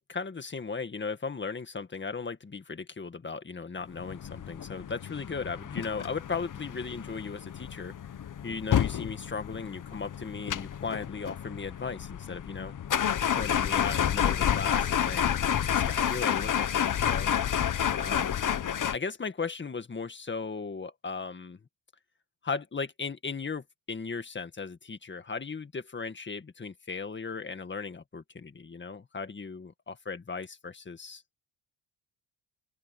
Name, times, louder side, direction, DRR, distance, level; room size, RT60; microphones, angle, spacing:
voice 1, 0.1-7.9 8.4-12.7 13.4-17.3 18.0-18.4 18.9-21.6 22.4-31.2, left 4 dB, 25° left, 1.9 m, -37 dB
sound 1, 4.0-19.0, left 9 dB, 40° left, 1.1 m, -30 dB
open air
cardioid pair, 125°, 48 cm